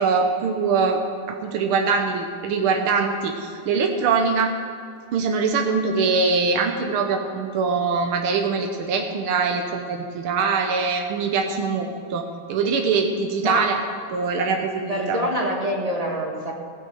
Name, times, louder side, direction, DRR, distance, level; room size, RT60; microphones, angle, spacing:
voice 1, 0.0-4.5 5.1-13.8 14.1-15.2, right 4 dB, 85° right, 3 dB, 1.8 m, -23 dB
voice 2, 14.9-16.5, equal, 20° right, 0 dB, 1.6 m, -25 dB
16.0 x 6.5 x 8.1 m, 2.3 s
omnidirectional pair, 2.3 m